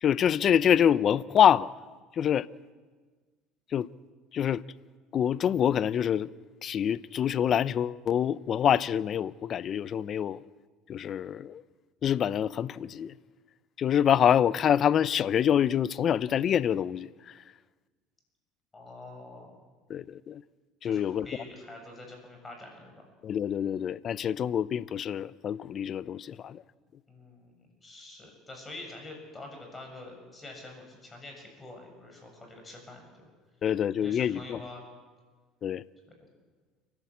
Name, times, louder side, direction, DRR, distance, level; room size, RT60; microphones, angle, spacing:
voice 1, 0.0-1.7 2.2-2.5 3.7-3.9 4.3-4.6 5.1-6.3 6.6-10.4 10.9-11.6 12.0-13.1 13.8-17.1 19.9-20.4 20.8-21.3 23.2-26.6 33.6-34.6 35.6-35.8, left 9 dB, 45° left, 0.6 m, -26 dB
voice 2, 18.7-19.7 20.8-23.0 27.1-33.3 34.0-34.8, left 2 dB, 20° left, 7.1 m, -46 dB
29.5 x 12.0 x 8.5 m
supercardioid pair, 90°, 0 cm